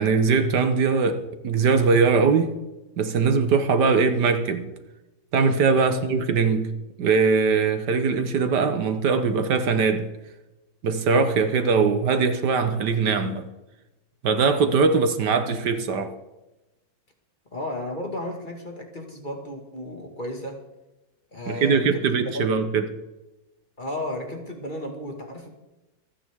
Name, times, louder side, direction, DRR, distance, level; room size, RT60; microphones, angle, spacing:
voice 1, 0.0-2.5 3.0-4.7 5.3-6.7 7.0-10.1 10.8-13.5 14.2-16.1 21.5-22.9, right 5 dB, 70° right, 1.6 m, -21 dB
voice 2, 17.5-20.6 21.3-22.5 23.8-25.5, left 1 dB, 25° left, 2.0 m, -34 dB
26.5 x 9.5 x 3.6 m
omnidirectional pair, 1.9 m